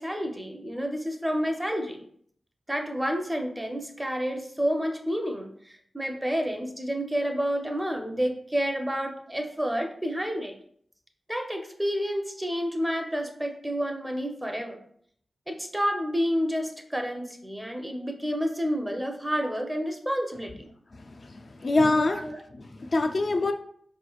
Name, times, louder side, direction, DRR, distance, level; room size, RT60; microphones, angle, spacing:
voice 1, 0.0-2.0 2.7-10.5 11.3-14.8 15.5-20.7 22.0-22.4, equal, 10° right, 3 dB, 0.6 m, -29 dB
voice 2, 21.0-22.3 22.6-23.5, left 2 dB, 55° left, 5 dB, 0.3 m, -25 dB
4.7 x 3.1 x 2.3 m, 0.63 s
wide cardioid pair, 85°, 0 cm